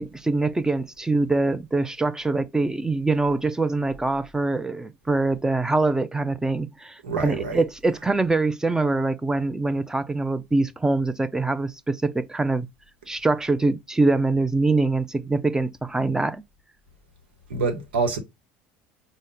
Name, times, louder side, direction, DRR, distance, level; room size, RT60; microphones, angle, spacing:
voice 1, 0.0-12.7 13.1-16.4, right 3 dB, 10° right, 0.5 m, -24 dB
voice 2, 7.0-7.6 17.5-18.2, right 4 dB, 85° right, 1.0 m, -26 dB
5.2 x 2.1 x 3.8 m
hypercardioid pair, 70°, 6 cm